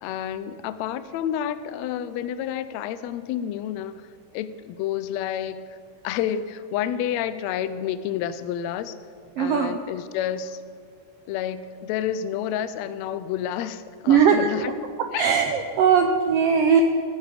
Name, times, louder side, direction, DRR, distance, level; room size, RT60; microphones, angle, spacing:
voice 1, 0.0-4.1 4.3-5.8 6.0-9.0 9.4-10.6 11.3-14.7 15.1-15.3, left 10 dB, 75° left, 13 dB, 1.7 m, -29 dB
voice 2, 9.4-9.8 14.1-14.5 15.0-16.8, right 7 dB, 85° right, 5 dB, 1.4 m, -19 dB
14.5 x 10.5 x 5.0 m, 2.2 s
omnidirectional pair, 3.5 m